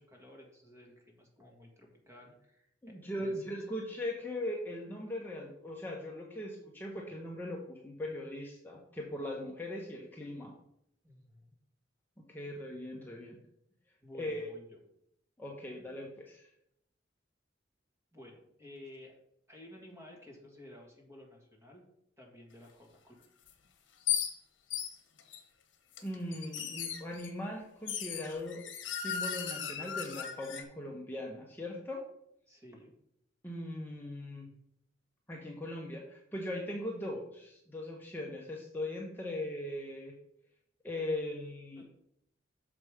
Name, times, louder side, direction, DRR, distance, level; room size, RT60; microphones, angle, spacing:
voice 1, 0.0-3.4 11.0-11.5 14.0-14.8 18.1-19.1 19.5-21.8 22.2-23.2 32.5-32.9 41.8-41.9, left 1 dB, 15° right, 0 dB, 1.8 m, -53 dB
voice 2, 2.8-10.5 12.3-13.4 14.1-14.5 15.4-16.5 26.0-28.6 28.9-32.0 33.4-34.5 35.3-40.1 40.8-41.8, left 1 dB, 10° left, -2 dB, 0.8 m, -39 dB
sound 1, 23.5-23.6 24.1-24.3 24.7-25.4 26.0-27.3 27.9-30.6, left 8 dB, 75° left, 1.0 m, -36 dB
6.7 x 4.8 x 4.9 m, 0.74 s
head